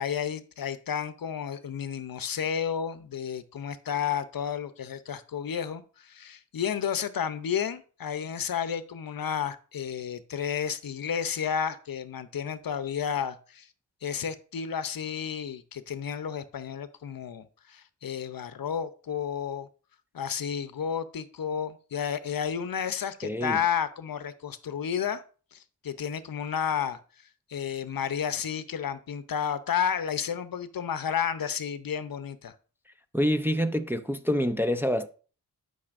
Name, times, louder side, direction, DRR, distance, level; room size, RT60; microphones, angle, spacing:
voice 1, 0.0-13.7 14.0-19.7 20.1-25.2 25.5-27.0 27.5-32.5, left 8 dB, 60° left, 0.7 m, -31 dB
voice 2, 23.2-23.6 33.1-35.1, equal, 5° right, 0.5 m, -26 dB
12.0 x 5.4 x 2.5 m
wide cardioid pair, 95°, 39 cm